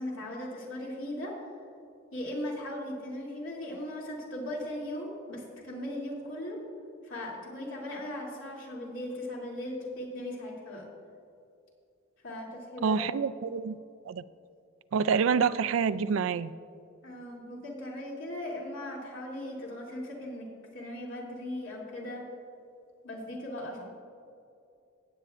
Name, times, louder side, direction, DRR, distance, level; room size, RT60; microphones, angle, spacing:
voice 1, 0.0-1.3 2.1-6.6 7.0-10.8 12.2-13.5 17.0-22.2 23.0-23.8, left 1 dB, 80° left, -4 dB, 2.6 m, -38 dB
voice 2, 12.8-13.8 14.1-14.2 14.9-16.5, right 6 dB, 85° right, 14 dB, 0.4 m, -27 dB
17.0 x 8.7 x 2.5 m, 2.6 s
head